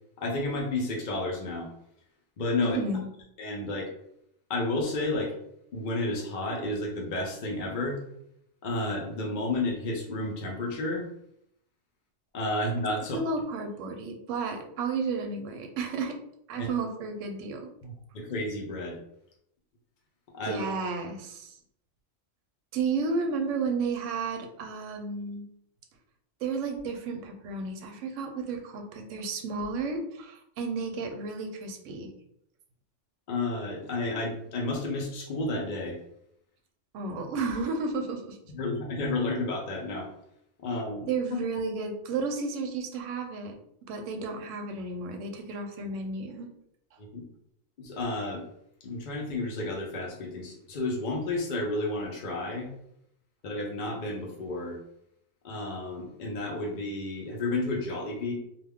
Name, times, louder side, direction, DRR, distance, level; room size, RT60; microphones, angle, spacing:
voice 1, 0.2-1.7 2.4-2.8 3.4-3.9 4.5-5.3 5.7-8.0 8.6-11.1 12.3-13.2 16.6-16.7 17.8-19.0 20.3-20.6 33.3-36.0 38.5-40.1 40.6-41.4 47.1-47.2 47.8-48.4 48.8-52.7 53.4-54.8 55.4-58.3, left 2 dB, 55° left, -1 dB, 0.5 m, -31 dB
voice 2, 2.6-3.0 13.1-16.2 16.5-17.7 20.4-21.6 22.7-25.4 26.4-32.1 36.9-38.4 41.1-43.6 43.9-46.5, right 4 dB, 75° right, 4 dB, 0.9 m, -32 dB
2.3 x 2.2 x 3.4 m, 0.73 s
omnidirectional pair, 1.4 m